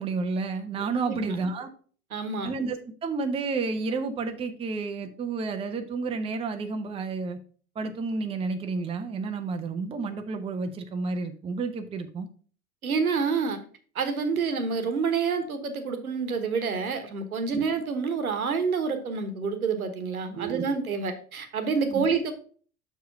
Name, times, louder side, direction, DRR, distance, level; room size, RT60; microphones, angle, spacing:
voice 1, 0.0-1.7 2.4-2.8 3.0-7.4 7.8-12.3 17.5-17.6 20.3-20.7 21.9-22.1, right 4 dB, 15° right, 7 dB, 0.6 m, -31 dB
voice 2, 0.7-1.4 2.1-2.5 12.8-13.6 13.9-22.3, right 5 dB, 75° right, 8 dB, 1.2 m, -28 dB
6.7 x 4.7 x 4.6 m, 0.43 s
figure-of-eight pair, 80°, 43 cm